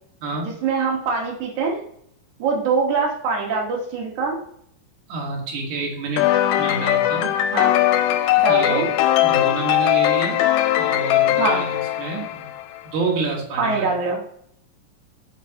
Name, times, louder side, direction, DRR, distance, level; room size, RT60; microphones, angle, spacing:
voice 1, 0.4-1.8 2.4-4.4 7.5-7.7 8.4-8.9 11.4-11.6 13.6-14.2, right 4 dB, 85° right, -2 dB, 1.7 m, -23 dB
voice 2, 5.1-6.2 6.6-7.3 8.3-8.9 9.2-10.4 10.8-12.5 12.8-13.9, right 3 dB, 70° right, -1 dB, 1.9 m, -28 dB
sound 1, 6.2-12.8, left 13 dB, 85° left, 2.9 m, -20 dB
6.5 x 6.2 x 2.8 m, 0.69 s
omnidirectional pair, 5.5 m